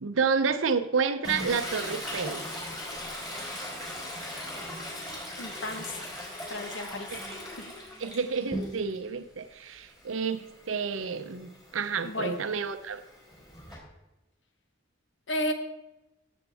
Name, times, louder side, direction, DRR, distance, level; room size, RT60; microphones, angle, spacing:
voice 1, 0.0-2.4 7.1-7.2 8.0-13.0, right 5 dB, 90° right, 10 dB, 0.7 m, -30 dB
Toilet flush, 1.2-9.0 9.4-13.7, equal, 20° left, 4.3 m, -39 dB
voice 2, 5.4-6.0 6.5-7.1 7.5-7.7 12.0-12.3 15.3-15.5, left 1 dB, 70° left, 6 dB, 1.1 m, -33 dB
14.0 x 7.2 x 3.5 m, 0.98 s
head